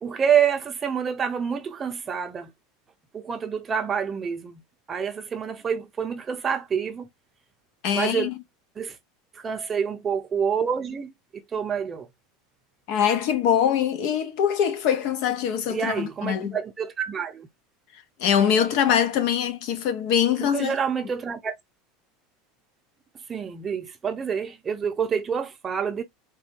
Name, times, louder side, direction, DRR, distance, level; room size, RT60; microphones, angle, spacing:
voice 1, 0.0-2.5 3.2-4.6 4.9-7.1 7.9-8.3 8.8-9.0 9.4-11.1 11.5-12.1 15.7-17.5 20.4-21.5 23.3-26.0, right 7 dB, 25° right, 0.6 m, -27 dB
voice 2, 7.8-8.4 12.9-16.6 18.2-20.8, left 8 dB, 60° left, 0.9 m, -23 dB
4.2 x 2.3 x 2.7 m
supercardioid pair, 125°, 0 cm